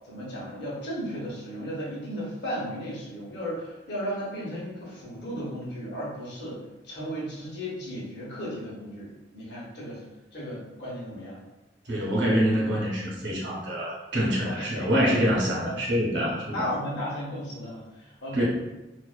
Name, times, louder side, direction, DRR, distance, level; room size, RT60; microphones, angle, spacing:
voice 1, 0.1-6.6 6.8-10.0 10.3-11.4 14.4-14.9 15.6-15.7 16.2-18.4, equal, 60° left, -5 dB, 0.8 m, -35 dB
voice 2, 11.9-16.6 18.3-18.4, equal, 70° right, -4 dB, 0.8 m, -25 dB
2.4 x 2.1 x 2.3 m, 1.0 s
head